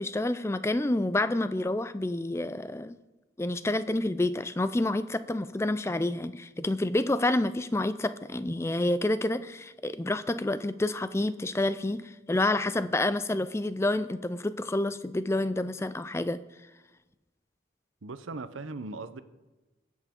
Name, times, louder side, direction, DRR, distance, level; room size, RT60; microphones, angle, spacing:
voice 1, 0.0-2.9 3.4-16.4, left 2 dB, 15° left, 0.4 m, -28 dB
voice 2, 18.0-19.2, right 3 dB, 90° right, 0.7 m, -38 dB
21.5 x 8.2 x 3.7 m
head